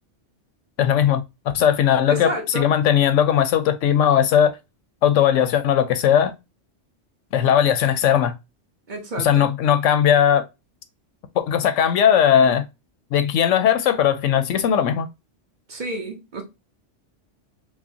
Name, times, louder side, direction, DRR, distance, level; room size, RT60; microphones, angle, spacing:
voice 1, 0.8-1.2 1.5-4.6 5.0-6.3 7.3-8.4 9.2-10.4 11.4-12.6 13.1-15.1, left 9 dB, 85° left, 1.0 m, -18 dB
voice 2, 2.1-2.7 8.9-9.5 15.7-16.4, equal, 45° right, 0.9 m, -29 dB
4.7 x 2.1 x 2.7 m
omnidirectional pair, 1.2 m